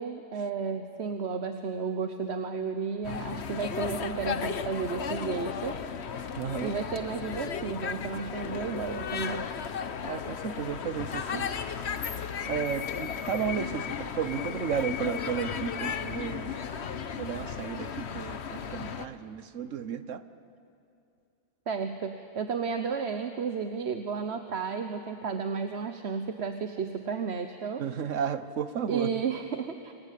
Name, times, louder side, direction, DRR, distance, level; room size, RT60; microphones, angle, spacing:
voice 1, 0.0-5.8 6.6-9.5 21.7-27.8 28.1-28.2 28.9-29.9, right 5 dB, 60° right, 7 dB, 1.3 m, -33 dB
sound 1, 3.0-19.1, left 7 dB, 60° left, 1.2 m, -35 dB
voice 2, 6.3-6.7 10.0-11.5 12.4-16.5 17.2-20.2 27.8-29.1, right 7 dB, 80° right, 12 dB, 1.4 m, -33 dB
30.0 x 23.5 x 8.5 m, 2.6 s
omnidirectional pair, 1.3 m